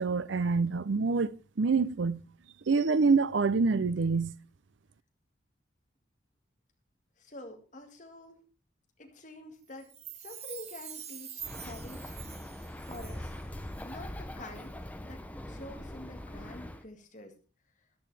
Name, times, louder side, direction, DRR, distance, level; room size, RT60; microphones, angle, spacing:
voice 1, 0.0-2.2 2.7-4.3, right 4 dB, 85° right, 0.6 m, -26 dB
voice 2, 7.2-8.4 9.0-9.9 10.2-12.2 12.9-13.3 13.8-14.8 15.0-17.3, left 1 dB, 45° left, 1.9 m, -47 dB
Chime, 9.8-13.4 13.7-13.8, right 9 dB, 35° right, 1.0 m, -45 dB
Bird, 11.4-16.8, left 1 dB, 10° left, 0.8 m, -42 dB
13.5 x 11.5 x 3.4 m
head